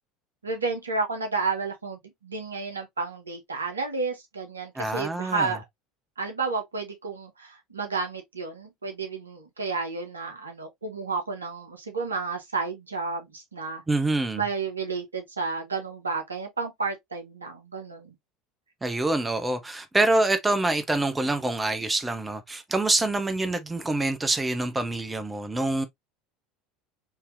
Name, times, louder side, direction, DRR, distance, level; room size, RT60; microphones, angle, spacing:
voice 1, 0.4-5.6 6.2-13.8 14.4-18.1, right 4 dB, 80° right, 0.9 m, -31 dB
voice 2, 4.8-5.5 13.9-14.4 18.8-25.8, right 2 dB, 15° right, 0.6 m, -26 dB
3.8 x 2.7 x 2.5 m
figure-of-eight pair, 70°, 0 cm